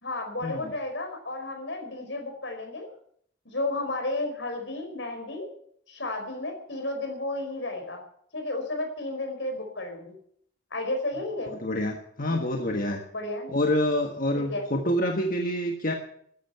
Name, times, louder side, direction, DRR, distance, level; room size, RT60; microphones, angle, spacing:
voice 1, 0.0-2.9 3.4-5.5 5.9-8.0 8.3-10.2 10.7-11.5 13.1-13.5 14.5-14.6, left 2 dB, 70° left, 4 dB, 4.7 m, -32 dB
voice 2, 11.4-13.0 13.5-15.9, left 1 dB, 50° left, 2 dB, 1.5 m, -27 dB
14.0 x 10.5 x 8.1 m, 0.66 s
head